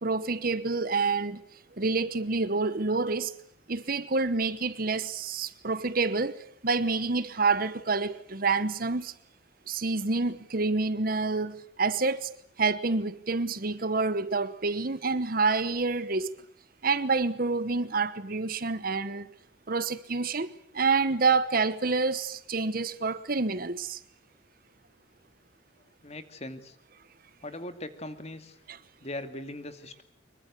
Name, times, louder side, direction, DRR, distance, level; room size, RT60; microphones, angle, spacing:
voice 1, 0.0-1.4 1.8-3.3 3.7-9.1 9.7-12.3 12.6-16.3 16.8-19.3 19.7-24.0 28.7-28.8, right 4 dB, 45° right, 1.1 m, -28 dB
voice 2, 26.0-26.8 27.4-28.6 29.0-30.0, left 1 dB, 30° left, 2.3 m, -40 dB
24.5 x 22.5 x 8.2 m
head